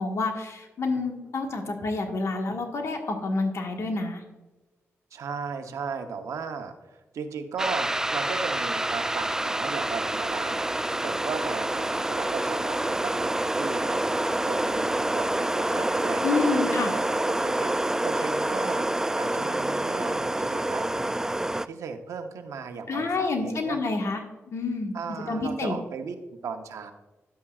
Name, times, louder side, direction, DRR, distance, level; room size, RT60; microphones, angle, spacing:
voice 1, 0.0-4.2 16.2-16.9 22.9-24.2 24.5-25.0 25.3-25.8, left 3 dB, 65° left, 3 dB, 1.5 m, -28 dB
voice 2, 5.1-18.9 19.2-21.1 21.6-23.8 24.9-26.9, right 5 dB, 80° right, 6 dB, 0.8 m, -36 dB
sound 1, 7.6-21.7, right 1 dB, 10° right, 0.3 m, -27 dB
11.0 x 8.6 x 2.4 m, 1.1 s
cardioid pair, 65°, 5 cm